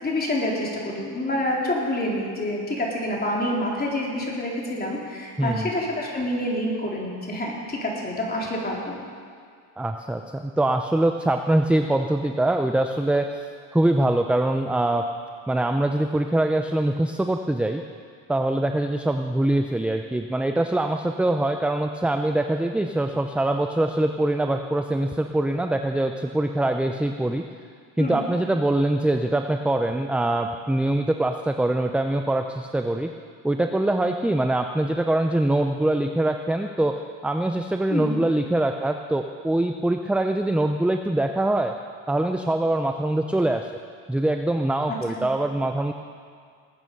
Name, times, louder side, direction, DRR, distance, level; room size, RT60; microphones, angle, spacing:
voice 1, 0.0-9.0 28.0-28.2 37.9-38.2 44.9-45.3, left 1 dB, 25° left, -3 dB, 3.7 m, -27 dB
voice 2, 9.8-13.3 13.7-15.1 15.5-17.8 18.3-27.4 28.0-33.1 33.4-36.9 37.2-41.7 42.1-43.7 44.1-45.9, right 1 dB, 5° right, 5 dB, 0.5 m, -23 dB
20.0 x 8.9 x 5.4 m, 2.1 s
cardioid pair, 100°, 40 cm